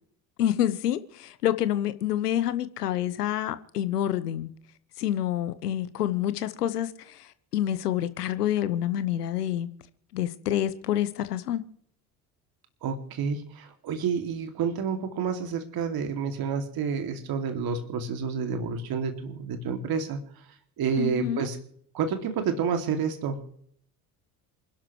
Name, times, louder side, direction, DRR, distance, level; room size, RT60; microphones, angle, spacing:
voice 1, 0.4-4.5 5.0-9.7 10.1-11.6 21.0-21.5, left 11 dB, 85° left, 1.1 m, -28 dB
voice 2, 12.8-20.4 20.8-21.6 21.9-23.5, right 6 dB, 50° right, 2.6 m, -29 dB
28.0 x 12.0 x 3.2 m
hypercardioid pair, 60°, 46 cm